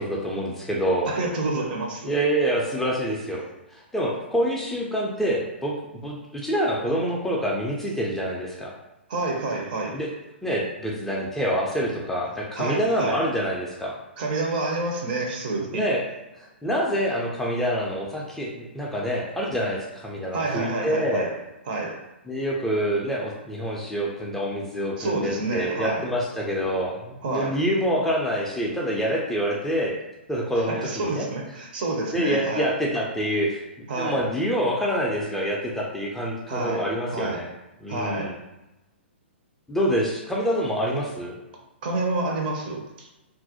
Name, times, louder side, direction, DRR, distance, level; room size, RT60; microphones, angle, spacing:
voice 1, 0.0-1.1 2.0-3.4 3.7-5.7 6.0-8.7 9.9-10.1 10.4-14.0 15.7-16.0 16.4-21.3 22.3-29.9 30.3-31.3 32.1-33.6 34.0-37.5 37.8-38.3 39.7-41.3, equal, 5° left, -4 dB, 0.3 m, -26 dB
voice 2, 1.1-2.1 9.1-10.0 12.6-13.3 14.2-15.9 20.3-21.3 21.7-22.0 25.0-26.1 27.2-27.6 30.6-32.8 33.9-34.2 36.5-36.9 37.1-37.4 37.9-38.3 41.8-43.1, right 2 dB, 45° right, 0 dB, 0.6 m, -28 dB
2.4 x 2.0 x 2.7 m, 0.98 s
figure-of-eight pair, 115°, 6 cm